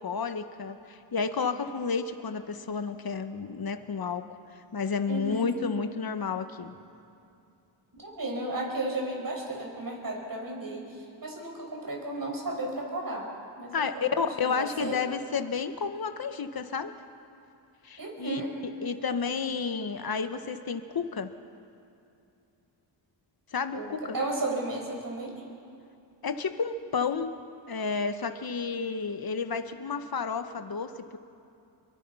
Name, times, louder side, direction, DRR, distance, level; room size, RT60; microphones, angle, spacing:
voice 1, 0.0-4.3 4.7-6.7 13.7-16.9 17.8-18.4 18.8-21.3 23.5-24.2 26.2-27.4 27.7-31.2, left 5 dB, 50° left, 8 dB, 1.4 m, -31 dB
voice 2, 5.1-5.5 8.0-13.3 13.6-15.0 18.0-18.5 23.7-25.3, right 2 dB, 45° right, 0 dB, 6.5 m, -34 dB
28.5 x 23.0 x 5.7 m, 2.6 s
cardioid pair, 70°, 47 cm